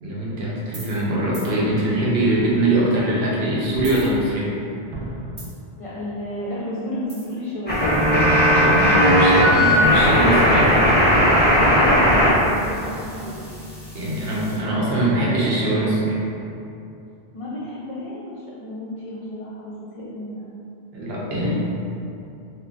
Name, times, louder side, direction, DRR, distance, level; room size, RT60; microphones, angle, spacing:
voice 1, 0.0-4.5 8.6-11.3 13.9-16.2 20.9-21.6, right 1 dB, 75° right, -6 dB, 1.0 m, -22 dB
sound 1, 0.7-1.1 1.3-1.5 3.7-4.6 4.9-5.8 7.1-7.4, right 1 dB, 35° right, 0.5 m, -36 dB
voice 2, 5.8-7.9 11.7-13.4 17.3-20.5 21.3-21.6, left 1 dB, 50° left, -8 dB, 0.4 m, -32 dB
sound 2, 7.7-12.3 12.6-14.5, equal, 10° left, 0.7 m, -17 dB
2.8 x 2.2 x 3.6 m, 2.7 s
omnidirectional pair, 1.1 m